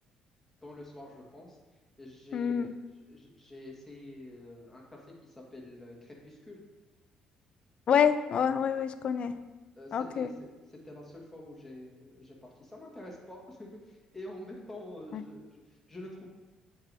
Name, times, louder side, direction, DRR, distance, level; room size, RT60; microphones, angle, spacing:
voice 1, 0.6-1.6 2.0-2.7 3.1-6.6 9.7-10.3 10.7-16.3, left 1 dB, 10° left, -3 dB, 1.7 m, -47 dB
voice 2, 2.3-2.7 7.9-9.4 9.9-10.3 15.1-15.2, left 7 dB, 55° left, 12 dB, 0.4 m, -27 dB
7.9 x 4.6 x 2.7 m, 1.2 s
cardioid pair, 90°, 2 cm